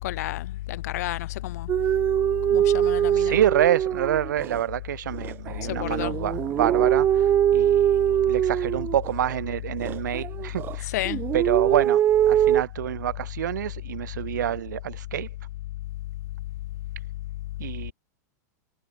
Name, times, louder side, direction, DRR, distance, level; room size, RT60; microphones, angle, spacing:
voice 1, 0.0-1.7 2.5-3.4 5.6-6.2 10.8-11.2, left 16 dB, 60° left, 5.2 m, -30 dB
sound 1, 1.7-4.6 5.1-9.4 9.8-10.8 11.1-12.6, right 11 dB, 25° right, 2.7 m, -23 dB
voice 2, 3.1-8.0 8.3-10.9 11.3-15.3 17.6-17.9, right 11 dB, 85° right, 4.8 m, -27 dB
supercardioid pair, 160°, 10 cm